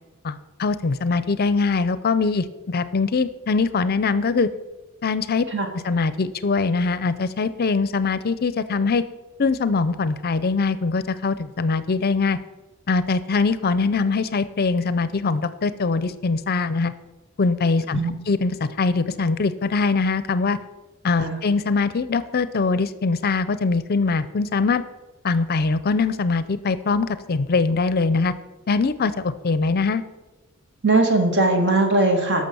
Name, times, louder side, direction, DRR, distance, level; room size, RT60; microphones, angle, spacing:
voice 1, 0.2-4.5 5.0-5.5 5.8-9.0 9.4-12.4 12.9-16.9 17.4-20.6 21.0-24.8 25.2-28.3 28.7-30.0, left 4 dB, 45° left, 15 dB, 0.5 m, -22 dB
voice 2, 30.8-32.5, right 2 dB, 55° right, 4 dB, 2.1 m, -19 dB
11.5 x 6.4 x 6.9 m, 1.1 s
head